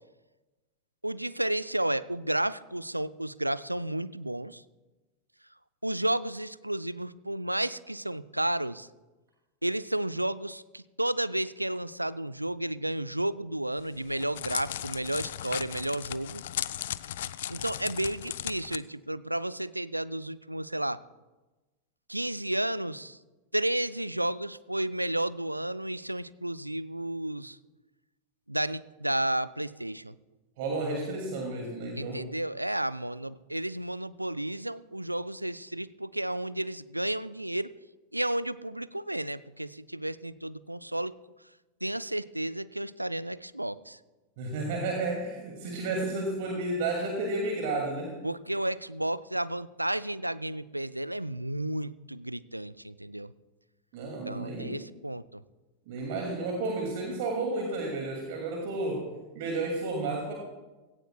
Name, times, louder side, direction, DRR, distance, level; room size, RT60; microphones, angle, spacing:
voice 1, 1.0-4.6 5.8-8.9 9.6-16.4 17.5-21.0 22.1-23.2 23.5-27.6 28.5-30.2 32.0-37.7 38.1-41.2 41.8-44.0 48.2-53.3 54.3-55.4, right 1 dB, 85° right, 17 dB, 0.3 m, -32 dB
Crackle, 13.8-18.8, left 12 dB, 60° left, 0.4 m, -36 dB
voice 2, 30.6-32.2 44.4-48.2 53.9-54.8 55.9-59.1 59.3-60.3, right 2 dB, 50° right, 0 dB, 2.4 m, -32 dB
17.0 x 16.0 x 2.3 m, 1.1 s
figure-of-eight pair, 90°, 0 cm